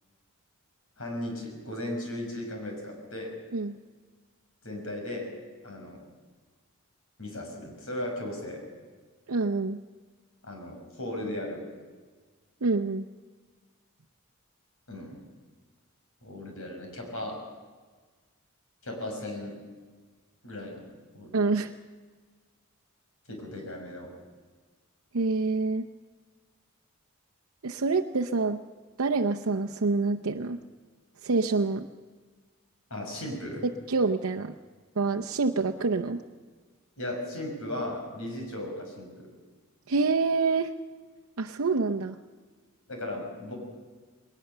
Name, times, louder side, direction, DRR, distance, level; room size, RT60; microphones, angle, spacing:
voice 1, 1.0-3.3 4.6-5.3 5.6-6.0 7.2-8.6 10.4-11.6 14.9-15.2 16.2-17.4 18.8-19.5 20.4-20.8 21.1-21.4 23.3-24.1 32.9-33.7 37.0-39.3 42.9-43.5, left 1 dB, 70° left, 2 dB, 5.8 m, -36 dB
voice 2, 9.3-9.8 12.6-13.1 21.3-21.7 25.1-25.9 27.6-28.6 29.0-30.6 31.2-31.9 33.6-34.5 35.0-36.2 39.9-40.7 41.4-42.2, right 3 dB, 75° right, 3 dB, 0.7 m, -26 dB
20.5 x 19.0 x 6.8 m, 1.4 s
head